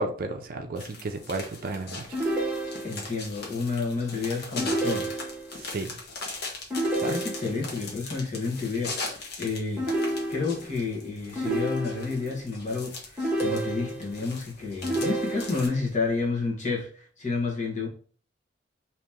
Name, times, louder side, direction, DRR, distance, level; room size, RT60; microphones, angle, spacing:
voice 1, 0.0-2.2 5.7-5.9 7.0-7.1, right 2 dB, 55° right, 5 dB, 0.5 m, -32 dB
sound 1, 0.8-15.7, left 3 dB, 60° left, 1.0 m, -40 dB
sound 2, 2.1-3.2 4.6-5.6 6.7-7.7 9.8-10.8 11.4-12.3 13.2-14.2 14.8-15.8, right 1 dB, 5° right, 1.2 m, -30 dB
voice 2, 2.8-5.2 7.0-9.9 10.3-17.9, left 4 dB, 45° left, -2 dB, 1.2 m, -30 dB
2.9 x 2.9 x 3.5 m, 0.43 s
head